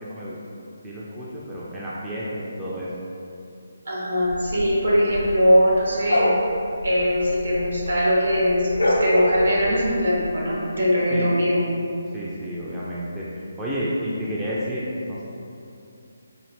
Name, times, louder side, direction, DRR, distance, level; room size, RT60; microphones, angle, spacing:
voice 1, 0.0-0.4 0.8-2.9 11.1-11.6 12.1-13.3 13.6-15.2, equal, 5° right, -9 dB, 0.4 m, -30 dB
voice 2, 3.9-6.3 6.8-11.6, equal, 65° right, -6 dB, 1.1 m, -21 dB
sound 1, 4.3-8.0 8.3-10.3, left 1 dB, 75° left, 0.6 m, -26 dB
3.9 x 2.4 x 3.2 m, 2.6 s
figure-of-eight pair, 145°, 0 cm